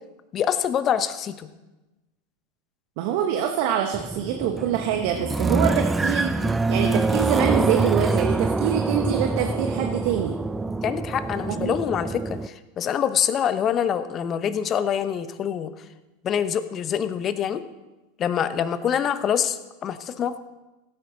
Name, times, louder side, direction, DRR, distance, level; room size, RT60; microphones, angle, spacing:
voice 1, 0.3-1.5 10.8-15.7 16.2-17.6 18.2-20.4, left 8 dB, 35° left, 12 dB, 0.9 m, -25 dB
voice 2, 3.0-10.4 11.5-11.8, right 9 dB, 60° right, 4 dB, 1.0 m, -25 dB
sound 1, 3.9-12.5, right 3 dB, 15° right, 0.4 m, -25 dB
16.5 x 9.3 x 3.9 m, 1.1 s
hypercardioid pair, 95°, 0 cm